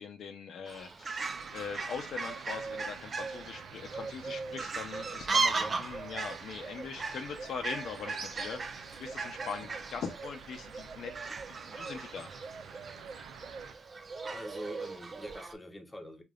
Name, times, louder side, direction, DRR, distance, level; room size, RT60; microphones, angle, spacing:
voice 1, 0.0-12.3, left 6 dB, 65° left, 0.7 m, -42 dB
Fowl, 0.7-15.5, right 4 dB, 35° right, 0.6 m, -37 dB
sound 1, 1.2-13.7, right 7 dB, 90° right, 0.5 m, -51 dB
voice 2, 14.3-16.2, equal, 15° left, 1.0 m, -44 dB
5.0 x 2.6 x 2.4 m
cardioid pair, 90°, 0 cm